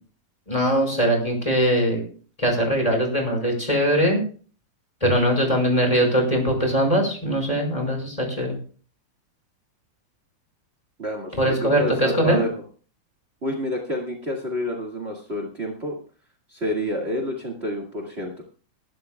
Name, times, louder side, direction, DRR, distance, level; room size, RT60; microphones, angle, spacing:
voice 1, 0.5-2.0 2.4-4.2 5.0-8.5 11.4-12.4, equal, 10° left, 1 dB, 5.2 m, -21 dB
voice 2, 11.0-12.5 13.4-16.0 16.5-18.4, equal, 35° right, 0 dB, 1.0 m, -28 dB
21.0 x 12.0 x 2.3 m, 0.41 s
omnidirectional pair, 4.3 m